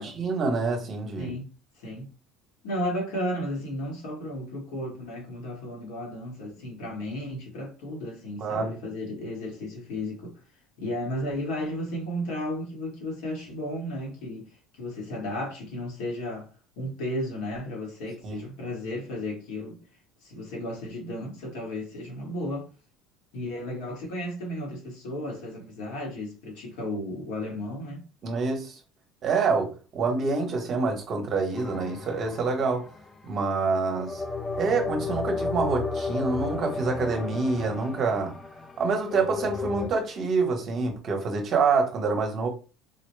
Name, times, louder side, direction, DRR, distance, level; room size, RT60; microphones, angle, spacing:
voice 1, 0.0-1.3 8.4-8.7 18.2-18.4 28.2-28.8 29.2-32.9 33.2-34.2 34.6-38.3 38.8-42.5, right 4 dB, 30° right, 0.9 m, -26 dB
voice 2, 1.2-1.5 1.8-2.1 2.6-10.4 10.8-16.5 16.8-19.8 20.2-22.7 23.3-28.0, left 1 dB, 70° left, 1.6 m, -34 dB
sound 1, 31.5-33.3 34.0-39.9, left 4 dB, 15° left, 0.3 m, -33 dB
3.8 x 2.1 x 3.2 m
cardioid pair, 175°, 0 cm